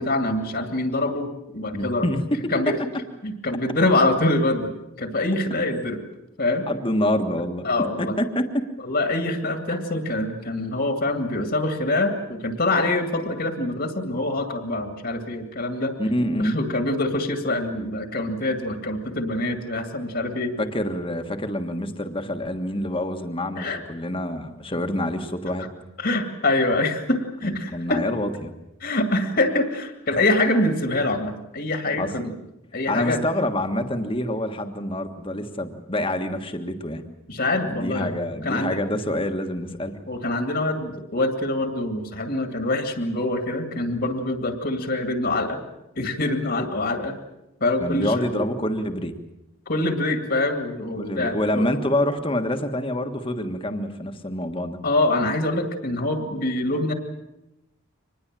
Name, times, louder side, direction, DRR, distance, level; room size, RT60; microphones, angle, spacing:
voice 1, 0.0-2.1 2.5-2.8 3.2-6.0 6.4-6.7 7.6-8.2 8.8-15.9 16.4-20.5 23.6-23.8 26.0-28.0 28.8-32.3 32.7-33.2 37.3-38.1 38.4-38.8 40.1-45.6 46.0-47.2 47.6-48.2 49.7-51.7 54.8-56.9, left 2 dB, 50° left, 6 dB, 2.2 m, -25 dB
voice 2, 1.7-2.2 6.7-7.7 8.0-8.6 16.0-16.6 20.6-25.7 27.4-28.5 32.0-32.1 32.9-37.0 37.6-40.0 47.8-49.1 51.0-54.8, left 1 dB, 25° left, 7 dB, 1.5 m, -26 dB
25.0 x 20.5 x 7.6 m, 0.91 s
head